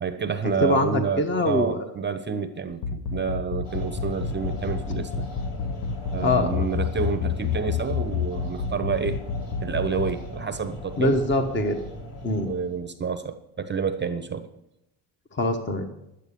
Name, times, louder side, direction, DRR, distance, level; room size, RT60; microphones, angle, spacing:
voice 1, 0.0-5.3 6.1-9.2 9.6-11.2 12.4-14.5, right 6 dB, 25° right, 10 dB, 0.8 m, -29 dB
voice 2, 0.6-1.8 6.2-6.7 11.0-11.8 12.2-12.5 15.4-15.9, left 1 dB, 25° left, 7 dB, 1.2 m, -23 dB
sound 1, 2.7-10.1, left 7 dB, 50° left, 1.1 m, -28 dB
sound 2, 3.6-12.8, left 1 dB, 65° left, 4.3 m, -38 dB
11.5 x 9.1 x 6.9 m, 0.87 s
cardioid pair, 115°, 47 cm